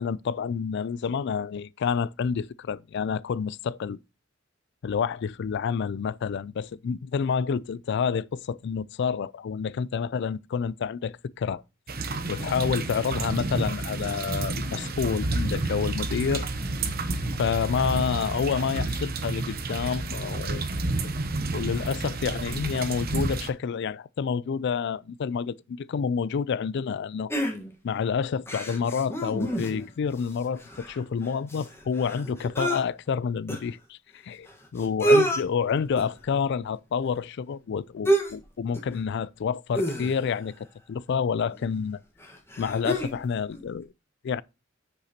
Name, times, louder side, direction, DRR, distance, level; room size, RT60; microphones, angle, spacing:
voice 1, 0.0-4.0 4.8-11.6 12.3-16.5 17.4-20.7 21.2-21.3 21.5-27.3 27.8-34.0 34.2-34.5 34.7-42.0 42.6-43.9 44.2-44.4, left 6 dB, 60° left, 0.3 m, -28 dB
sound 1, 11.9-23.5, right 2 dB, 50° right, 0.9 m, -30 dB
sound 2, 27.3-28.0 28.5-29.9 30.2-30.3 30.6-32.8 33.5-33.6 34.5-34.6 34.8-35.4 36.0-36.2 38.1-38.4 38.7-38.9 39.7-40.4 41.5-41.6 42.2-43.2 43.5-43.6, right 2 dB, 15° left, 1.4 m, -27 dB
8.1 x 6.5 x 2.9 m
head